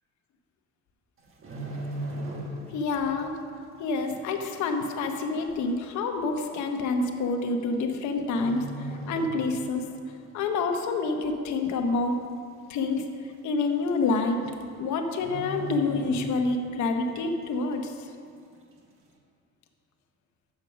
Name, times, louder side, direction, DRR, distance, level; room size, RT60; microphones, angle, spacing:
sound 1, 1.2-2.9 3.2-3.5 4.0-4.1 5.0-5.1 5.3-5.4 6.3-6.5 7.6-8.0 8.3-9.9 10.2-10.4 10.9-11.4 11.8-11.9 12.1-12.2 12.6-12.7 13.7-13.8 14.0-14.3 14.6-14.7 15.1-16.8 17.1-17.2, right 1 dB, 40° right, 1.3 m, -37 dB
voice 1, 2.7-3.4 3.8-9.8 10.3-12.2 12.7-13.0 13.4-14.4 14.8-17.9, left 3 dB, 65° left, 4 dB, 0.9 m, -27 dB
7.1 x 6.4 x 5.5 m, 2.2 s
cardioid pair, 135°, 32 cm